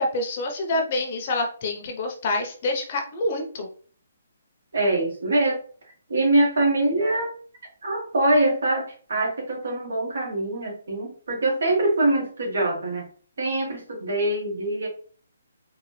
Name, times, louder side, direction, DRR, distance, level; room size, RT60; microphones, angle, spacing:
voice 1, 0.0-3.7, left 2 dB, 35° left, 3 dB, 0.8 m, -27 dB
voice 2, 4.7-5.6 6.1-7.3 7.8-13.1 13.4-14.9, right 2 dB, 65° right, 0 dB, 1.7 m, -23 dB
3.8 x 2.5 x 3.1 m, 0.43 s
hypercardioid pair, 170°, 0 cm